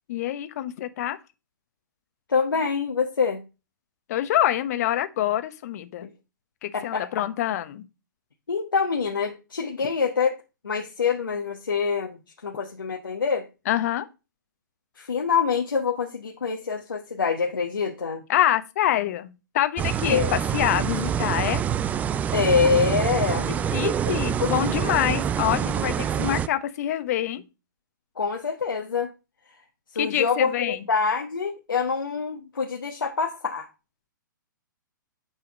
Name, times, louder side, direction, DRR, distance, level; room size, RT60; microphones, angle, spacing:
voice 1, 0.1-1.2 4.1-6.1 6.6-7.9 13.7-14.1 18.3-21.6 23.5-27.4 30.0-30.8, left 12 dB, 50° left, 1.0 m, -26 dB
voice 2, 2.3-3.4 6.0-6.1 6.7-7.1 8.5-13.5 15.0-18.2 20.0-20.3 22.3-23.5 23.8-24.0 24.4-24.5 28.2-29.1 29.9-33.7, left 5 dB, 80° left, 1.3 m, -25 dB
sound 1, 19.8-26.5, right 8 dB, 15° right, 0.3 m, -26 dB
8.9 x 4.1 x 5.2 m
hypercardioid pair, 120°, 11 cm